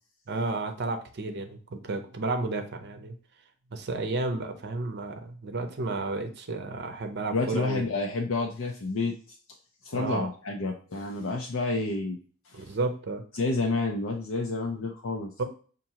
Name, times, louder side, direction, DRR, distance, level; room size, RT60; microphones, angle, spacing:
voice 1, 0.3-3.2 3.7-7.9 9.9-10.3 11.7-11.8 12.5-13.2 15.4-15.5, right 3 dB, 55° right, 6 dB, 0.6 m, -32 dB
voice 2, 7.3-9.1 9.8-12.2 12.5-12.6 13.4-15.3, left 3 dB, 70° left, 1 dB, 0.5 m, -29 dB
5.7 x 2.5 x 2.8 m, 0.41 s
head